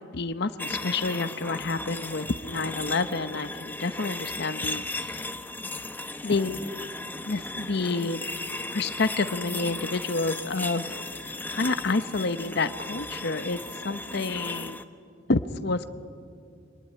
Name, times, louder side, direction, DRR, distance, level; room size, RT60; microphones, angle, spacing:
voice 1, 0.1-5.3 6.2-6.6 7.3-8.2 8.7-11.0 11.2-14.8 15.3-15.9, left 3 dB, 55° left, 11 dB, 0.8 m, -29 dB
sound 1, 0.6-14.8, left 2 dB, 10° left, 0.8 m, -36 dB
24.0 x 20.5 x 9.8 m, 2.4 s
head